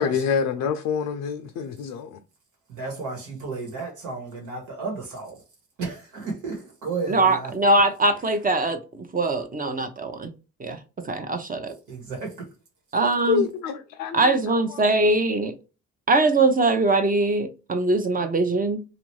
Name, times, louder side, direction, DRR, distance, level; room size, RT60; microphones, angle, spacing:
voice 1, 0.0-2.2 13.3-14.8, left 6 dB, 80° left, 0.5 m, -27 dB
voice 2, 2.7-5.4 5.8-7.5 11.9-12.5, right 4 dB, 85° right, 1.6 m, -33 dB
voice 3, 7.1-10.3 10.6-10.8 11.1-11.7 12.9-13.5 14.1-15.5 16.1-18.8, right 2 dB, 30° right, 0.6 m, -22 dB
3.0 x 2.5 x 3.0 m
cardioid pair, 90°, 30 cm